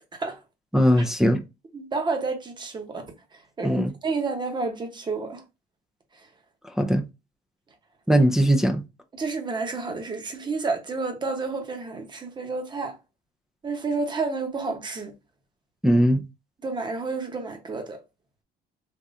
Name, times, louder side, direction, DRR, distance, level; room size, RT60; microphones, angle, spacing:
voice 1, 0.7-1.4 3.6-3.9 6.8-7.0 8.1-8.8 15.8-16.2, equal, 5° right, 0.6 m, -19 dB
voice 2, 1.7-3.1 3.3-5.4 6.1-6.3 9.1-13.0 13.6-15.1 16.6-18.0, right 4 dB, 25° right, 1.1 m, -30 dB
3.6 x 3.1 x 2.6 m
cardioid pair, 110°, 17 cm